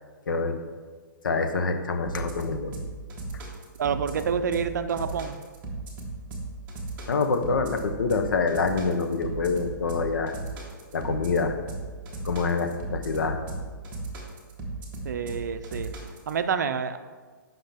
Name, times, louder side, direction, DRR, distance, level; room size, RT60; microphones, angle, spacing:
voice 1, 0.3-0.6 1.2-2.7 7.1-10.4 10.9-11.6 12.2-13.4, left 4 dB, 75° left, 7 dB, 0.9 m, -26 dB
sound 1, 2.1-16.3, right 2 dB, 15° right, 1.0 m, -36 dB
voice 2, 3.8-5.4 15.0-15.9 16.3-17.0, right 7 dB, 60° right, 10 dB, 0.5 m, -28 dB
7.8 x 5.7 x 3.5 m, 1.4 s
hypercardioid pair, 165°, 11 cm